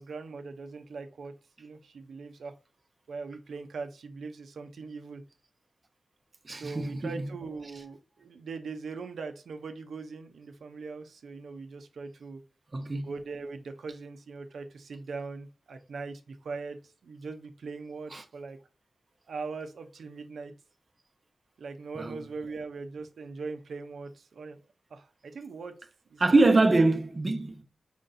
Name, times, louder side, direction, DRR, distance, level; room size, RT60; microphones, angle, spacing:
voice 1, 0.0-1.3 1.6-2.5 3.1-5.2 6.5-12.4 13.0-18.6 19.3-20.5 21.6-24.6 24.9-25.8 26.1-26.5, right 4 dB, 90° right, 0.6 m, -41 dB
voice 2, 6.5-7.1 12.7-13.1 18.1-18.2 22.0-22.2 26.2-27.6, right 2 dB, 30° right, 0.6 m, -24 dB
5.1 x 2.6 x 3.8 m
wide cardioid pair, 145°, 0 cm